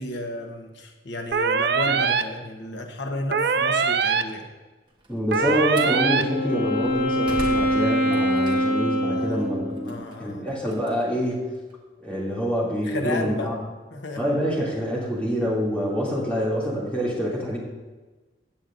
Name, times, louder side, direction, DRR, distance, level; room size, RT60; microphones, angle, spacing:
voice 1, 0.0-4.4 9.0-9.6 9.8-10.5 12.8-13.5 13.9-14.2, left 1 dB, 85° left, 3 dB, 1.2 m, -33 dB
sound 1, 1.3-2.2 3.3-4.2 5.3-6.2, right 6 dB, 65° right, 0.4 m, -22 dB
Slam, 4.9-6.0 6.6-8.9 9.3-11.7, right 1 dB, 25° right, 1.4 m, -40 dB
voice 2, 5.1-11.5 12.0-13.6 14.2-17.6, equal, 5° left, -6 dB, 2.6 m, -26 dB
Wind instrument woodwind instrument, 5.6-10.0, equal, 55° left, 2.4 m, -24 dB
16.0 x 8.8 x 2.6 m, 1.2 s
head